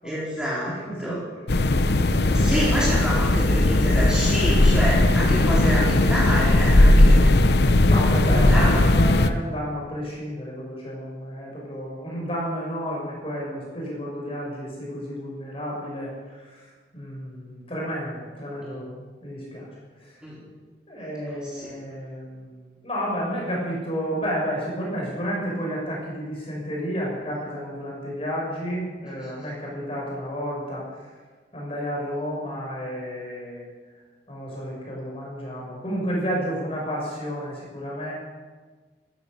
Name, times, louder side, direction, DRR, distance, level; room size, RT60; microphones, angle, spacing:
voice 1, 0.0-0.7 1.0-1.2 2.3-7.4 8.0-9.0 20.2-20.4 21.3-21.7 29.2-29.3, equal, 5° right, -8 dB, 4.2 m, -28 dB
voice 2, 0.7-1.2 1.6-2.7 7.9-19.7 20.0-20.2 20.9-31.1 31.5-33.7 34.3-38.2, equal, 35° left, -3 dB, 6.9 m, -31 dB
sound 1, 1.5-9.3, left 1 dB, 65° left, 0.9 m, -18 dB
15.0 x 13.5 x 6.9 m, 1.4 s
head